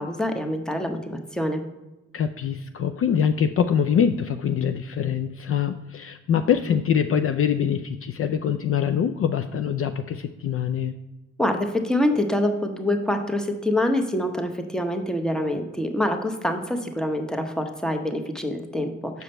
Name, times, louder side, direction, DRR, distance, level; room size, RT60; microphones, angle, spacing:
voice 1, 0.0-1.6 11.4-19.2, left 1 dB, ahead, 5 dB, 0.8 m, -25 dB
voice 2, 2.1-11.0, left 8 dB, 50° left, 9 dB, 0.4 m, -24 dB
6.8 x 5.0 x 4.3 m, 1.0 s
cardioid pair, 90°, 30 cm